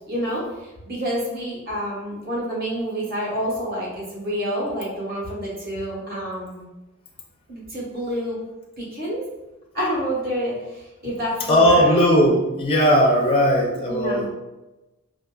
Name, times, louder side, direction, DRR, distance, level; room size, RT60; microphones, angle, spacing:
voice 1, 0.1-6.6 7.5-8.4 8.8-9.2 9.7-12.0 13.9-14.3, equal, 45° right, -5 dB, 1.1 m, -28 dB
voice 2, 11.5-14.3, equal, 25° left, -1 dB, 0.4 m, -17 dB
3.6 x 2.4 x 2.2 m, 1.0 s
head